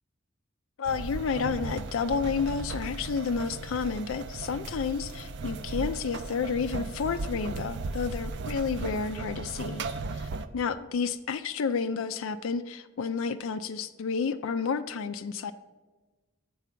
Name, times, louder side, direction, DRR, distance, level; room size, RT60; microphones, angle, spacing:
voice 1, 0.8-15.5, left 5 dB, 80° left, 9 dB, 0.4 m, -31 dB
sound 1, 0.9-10.5, right 3 dB, 60° right, 0.5 m, -36 dB
7.4 x 4.6 x 6.7 m, 1.2 s
head